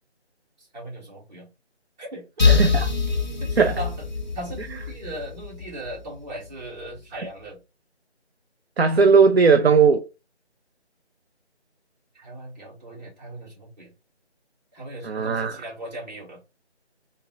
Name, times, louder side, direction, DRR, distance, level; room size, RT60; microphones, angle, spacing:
voice 1, 0.6-1.5 2.0-2.5 3.4-4.0 4.3-7.6 12.1-13.9 14.7-16.4, right 1 dB, 40° right, 2.3 m, -38 dB
sound 1, 2.4-6.1, left 4 dB, 40° left, 0.5 m, -24 dB
voice 2, 2.4-2.9 3.6-3.8 7.1-7.3 8.8-10.1 15.0-15.6, right 5 dB, 65° right, 0.5 m, -18 dB
3.6 x 2.0 x 3.9 m
figure-of-eight pair, 160°, 34 cm